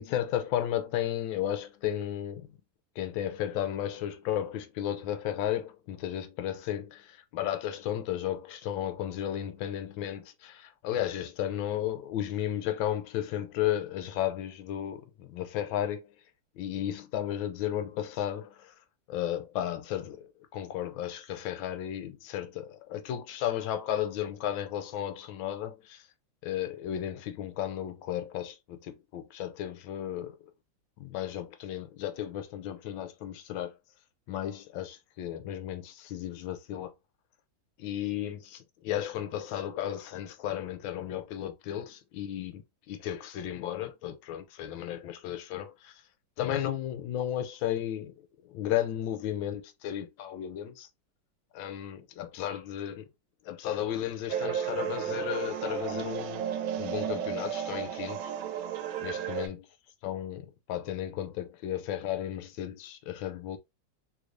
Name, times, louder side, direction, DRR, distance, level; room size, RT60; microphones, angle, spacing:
voice 1, 0.0-2.5 3.0-16.1 16.6-18.7 19.1-26.1 26.4-30.4 31.0-33.7 34.3-36.9 37.8-42.6 42.9-45.9 46.4-48.1 48.5-50.9 51.5-53.1 53.4-56.4 56.7-58.3 59.0-59.6 60.0-63.6, left 11 dB, 85° left, 1.4 m, -34 dB
sound 1, 54.3-59.5, right 9 dB, 85° right, 1.4 m, -33 dB
3.4 x 2.5 x 3.0 m
omnidirectional pair, 2.1 m